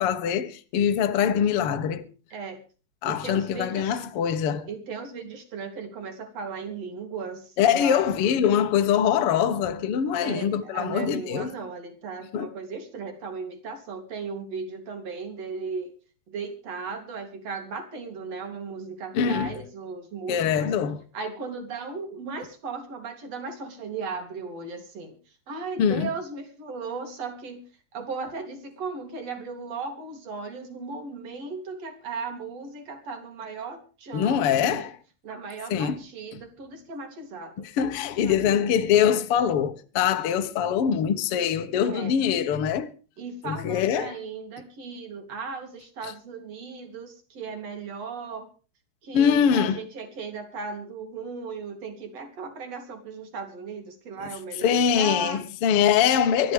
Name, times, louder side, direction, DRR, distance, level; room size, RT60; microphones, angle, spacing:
voice 1, 0.0-2.1 3.0-4.7 7.6-11.5 12.3-12.5 19.1-19.5 20.3-21.0 25.8-26.1 34.1-35.0 35.7-36.0 37.6-42.9 43.4-44.2 49.1-49.8 54.6-56.5, left 8 dB, 85° left, 1.2 m, -23 dB
voice 2, 3.0-4.0 4.7-8.0 10.2-15.9 16.3-20.7 21.1-25.2 25.5-27.6 27.9-34.9 35.2-38.7 41.8-42.1 43.2-48.5 49.0-55.4, right 4 dB, 40° right, 3.9 m, -36 dB
24.0 x 13.5 x 3.5 m
omnidirectional pair, 4.9 m